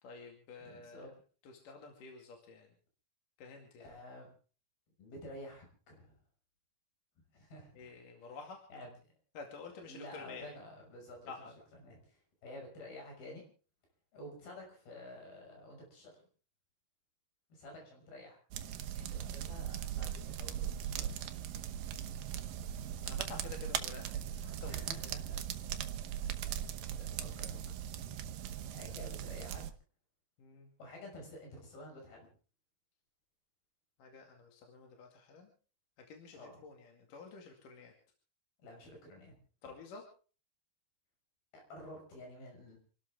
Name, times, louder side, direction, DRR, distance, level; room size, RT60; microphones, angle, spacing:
voice 1, 0.0-1.0 1.4-2.7 3.4-3.9 7.8-8.7 9.3-10.5 11.3-11.5 23.0-25.1 28.9-29.0 30.4-30.7 34.0-35.5 36.0-37.9 39.6-40.1, left 4 dB, 60° left, 3 dB, 3.7 m, -50 dB
voice 2, 0.6-1.1 3.8-4.3 5.0-6.2 7.3-7.9 8.2-8.4 8.7-8.9 9.8-13.4 14.1-16.2 17.5-18.4 18.9-21.5 24.6-25.5 26.1-26.5 26.9-27.6 28.7-29.7 30.8-32.3 36.3-36.7 38.6-39.4 39.6-39.7 41.5-42.8, left 1 dB, 75° left, 1 dB, 7.9 m, -51 dB
sound 1, 18.5-29.7, right 10 dB, 70° right, 2.6 m, -39 dB
28.5 x 12.5 x 3.6 m, 0.39 s
omnidirectional pair, 4.3 m